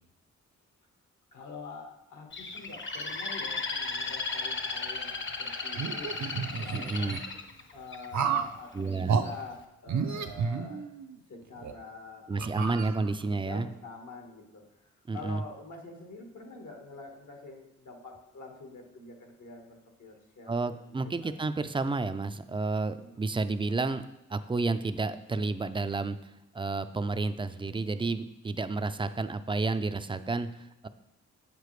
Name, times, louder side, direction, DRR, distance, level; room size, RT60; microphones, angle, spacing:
voice 1, 1.3-6.1 6.6-7.1 7.7-9.6 9.8-10.8 11.3-12.6 13.3-14.6 15.1-20.6 20.9-21.3 23.0-23.1, left 3 dB, 75° left, 2 dB, 1.5 m, -46 dB
Bird, 2.3-8.4 8.9-9.3, left 4 dB, 40° left, 0.8 m, -35 dB
sound 1, 5.7-7.2 8.1-8.6 9.1-9.3 9.9-11.1 11.6-11.7 12.4-13.3, right 6 dB, 65° right, 0.6 m, -31 dB
voice 2, 6.7-7.2 8.7-9.2 12.3-13.7 15.1-15.4 20.5-24.0 24.3-30.9, right 3 dB, 15° right, 11 dB, 0.4 m, -31 dB
7.4 x 6.8 x 3.2 m, 0.92 s
cardioid pair, 65°, 30 cm